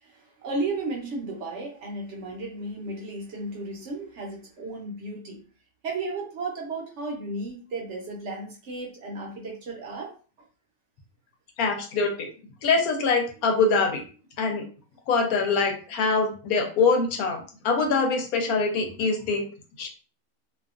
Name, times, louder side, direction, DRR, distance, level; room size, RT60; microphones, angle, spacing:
voice 1, 0.0-5.4 5.8-10.1, right 2 dB, 60° right, 0 dB, 0.9 m, -34 dB
voice 2, 11.6-12.3 12.6-14.0 14.4-14.7 15.1-17.4 17.6-19.4 19.8-19.9, left 4 dB, 80° left, 3 dB, 1.1 m, -24 dB
2.7 x 2.3 x 2.4 m, 0.38 s
omnidirectional pair, 1.5 m